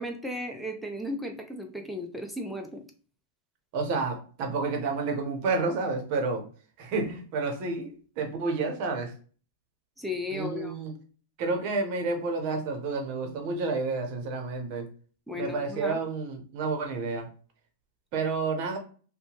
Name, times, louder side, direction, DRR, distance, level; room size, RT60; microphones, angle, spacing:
voice 1, 0.0-2.8 10.0-10.8 15.3-16.0, left 1 dB, ahead, 3 dB, 0.5 m, -35 dB
voice 2, 3.7-6.5 6.8-9.1 10.3-11.0 11.4-14.9 15.3-17.3 18.1-18.8, right 3 dB, 50° right, 3 dB, 0.8 m, -30 dB
2.8 x 2.2 x 2.8 m, 0.41 s
supercardioid pair, 140°, 0 cm